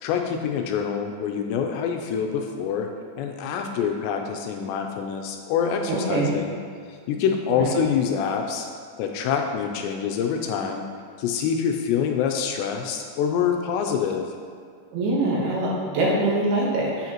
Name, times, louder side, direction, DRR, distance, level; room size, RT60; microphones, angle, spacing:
voice 1, 0.0-2.9 3.2-6.5 7.1-8.7 9.0-10.8 11.2-14.3, left 7 dB, 85° left, 3 dB, 2.7 m, -26 dB
voice 2, 5.9-6.4 7.5-7.8 14.9-17.1, right 2 dB, 70° right, -5 dB, 3.0 m, -24 dB
8.3 x 7.9 x 3.0 m, 2.1 s
omnidirectional pair, 5.1 m